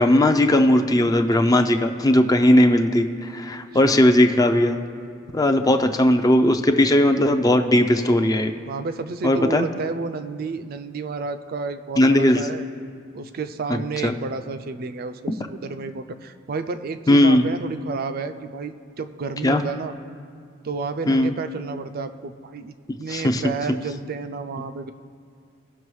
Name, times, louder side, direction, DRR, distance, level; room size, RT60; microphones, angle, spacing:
voice 1, 0.0-4.8 5.3-8.5 9.2-9.7 12.0-12.4 13.7-14.1 17.1-17.5 19.4-19.6 21.1-21.3 23.1-23.4, left 1 dB, 20° left, 6 dB, 0.5 m, -18 dB
voice 2, 5.6-6.0 8.7-12.6 13.1-19.9 20.6-22.7 23.0-24.9, right 4 dB, 50° right, 9 dB, 0.4 m, -31 dB
18.0 x 6.0 x 3.1 m, 2.3 s
head